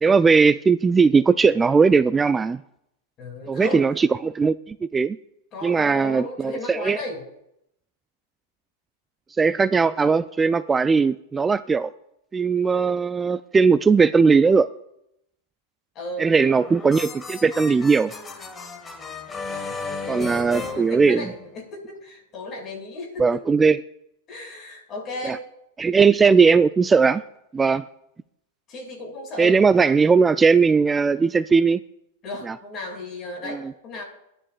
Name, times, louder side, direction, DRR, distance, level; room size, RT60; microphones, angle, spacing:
voice 1, 0.0-2.6 3.5-5.2 5.6-7.0 9.4-11.9 12.3-14.7 16.2-18.1 20.1-21.2 23.2-23.8 25.2-25.4 25.8-27.2 27.5-27.8 29.4-31.8 32.5-32.6 33.5-33.6, right 5 dB, 15° right, 14 dB, 0.3 m, -18 dB
voice 2, 3.2-3.9 5.5-7.2 15.9-16.7 19.5-23.2 24.3-25.4 28.7-29.6 32.2-34.0, left 2 dB, 35° left, 1 dB, 5.7 m, -35 dB
sound 1, 16.3-21.7, left 4 dB, 20° left, 1.4 m, -35 dB
22.0 x 10.0 x 2.4 m, 0.80 s
hypercardioid pair, 110°, 0 cm